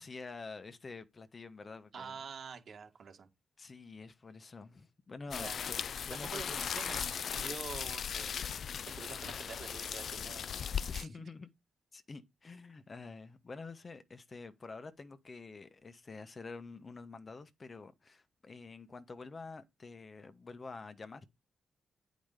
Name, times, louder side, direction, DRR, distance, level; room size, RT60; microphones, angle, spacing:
voice 1, 0.0-2.2 3.6-5.8 6.0-6.6 11.0-11.5 11.9-21.3, left 4 dB, 40° left, 1.1 m, -48 dB
voice 2, 1.9-3.3 5.3-5.6 6.1-8.4 8.9-10.4 10.9-11.3, right 6 dB, 60° right, 1.9 m, -47 dB
sound 1, 5.3-11.0, left 7 dB, 65° left, 0.4 m, -38 dB
8.9 x 5.1 x 5.0 m
cardioid pair, 65°, 0 cm